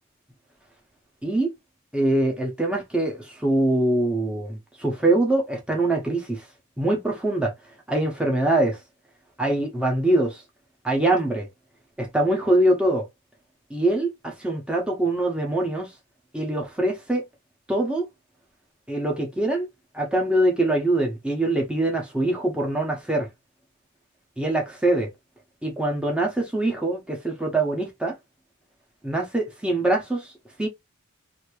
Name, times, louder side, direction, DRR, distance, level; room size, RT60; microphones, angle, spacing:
voice 1, 1.9-6.4 6.8-7.5 7.9-8.8 9.4-10.4 10.8-11.5 12.0-13.1 13.7-15.9 16.3-17.2 17.7-18.1 18.9-19.7 19.9-23.3 24.4-25.1 25.6-28.2 29.0-30.3 30.6-30.7, right 1 dB, 5° right, 1.0 m, -23 dB
2.9 x 2.8 x 3.1 m
head